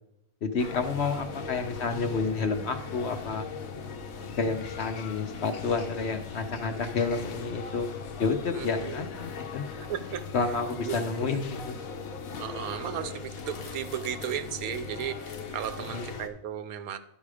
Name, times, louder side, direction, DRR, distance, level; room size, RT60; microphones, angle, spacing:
voice 1, 0.4-3.5 4.4-7.9 8.2-9.7 10.3-11.8 15.9-16.1, left 4 dB, 55° left, 7 dB, 0.9 m, -30 dB
sound 1, 0.6-16.3, left 5 dB, 75° left, 1.3 m, -39 dB
voice 2, 1.2-1.6 8.5-9.1 9.6-10.5 10.8-11.4 12.4-17.0, right 10 dB, 80° right, 11 dB, 1.1 m, -36 dB
11.5 x 5.4 x 4.9 m, 0.84 s
omnidirectional pair, 1.5 m